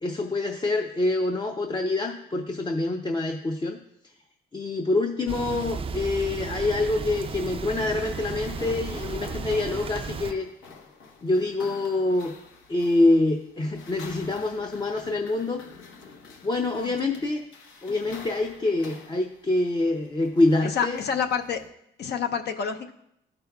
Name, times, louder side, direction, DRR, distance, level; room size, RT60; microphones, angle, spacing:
voice 1, 0.0-3.8 4.5-10.5 11.2-12.3 12.7-15.6 16.4-17.4 17.8-21.0, left 2 dB, 25° left, 3 dB, 0.6 m, -26 dB
sound 1, 5.3-10.3, right 5 dB, 30° right, 0.4 m, -34 dB
sound 2, 8.4-21.7, left 4 dB, 85° left, 0.9 m, -47 dB
voice 2, 20.6-21.6 22.0-22.9, left 7 dB, 55° left, 6 dB, 0.6 m, -28 dB
13.0 x 5.1 x 2.3 m, 0.78 s
cardioid pair, 90°, 20 cm